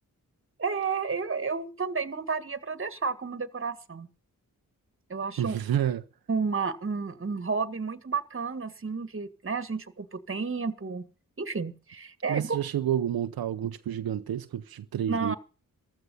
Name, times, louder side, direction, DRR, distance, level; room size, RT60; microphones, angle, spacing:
voice 1, 0.6-4.1 5.1-5.6 6.3-11.0 11.4-12.6 15.1-15.4, right 5 dB, 35° right, 1.8 m, -31 dB
voice 2, 5.4-6.0 12.3-15.3, right 10 dB, 85° right, 0.8 m, -29 dB
14.5 x 13.0 x 5.5 m
cardioid pair, 65°, 35 cm